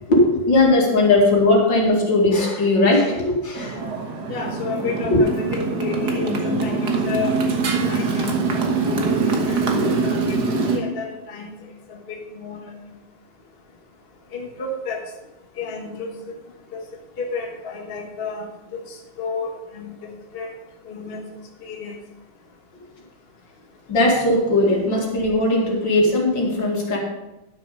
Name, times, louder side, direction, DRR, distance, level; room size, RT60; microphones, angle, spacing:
voice 1, 0.1-3.9 5.1-5.2 23.9-27.0, left 2 dB, 65° left, -1 dB, 2.9 m, -18 dB
Motorcycle, 3.6-10.8, right 4 dB, 55° right, 1.8 m, -23 dB
voice 2, 4.3-7.4 7.8-8.7 9.5-9.6 10.0-11.5 11.9-12.6 14.3-15.0 15.6-16.1 16.7-16.8 17.2-18.5 19.2-20.5 20.9-21.3 21.6-21.9, left 4 dB, 35° left, 1 dB, 1.3 m, -31 dB
11.5 x 6.6 x 5.4 m, 0.98 s
omnidirectional pair, 2.2 m